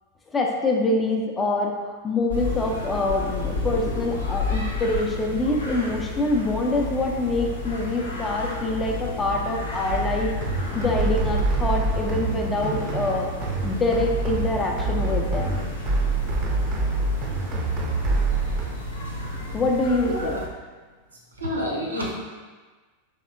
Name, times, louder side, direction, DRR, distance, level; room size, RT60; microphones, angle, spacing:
voice 1, 0.3-10.3 10.7-13.3 13.6-15.6 19.5-20.4, left 2 dB, 20° left, 0 dB, 0.5 m, -25 dB
sound 1, 2.3-20.5, left 2 dB, 75° left, 0.7 m, -32 dB
sound 2, 9.9-18.6, right 3 dB, 35° right, 0.5 m, -26 dB
voice 2, 20.1-20.4 21.4-22.1, equal, 75° right, -2 dB, 0.7 m, -28 dB
3.5 x 3.3 x 2.5 m, 1.4 s
figure-of-eight pair, 90°, 0 cm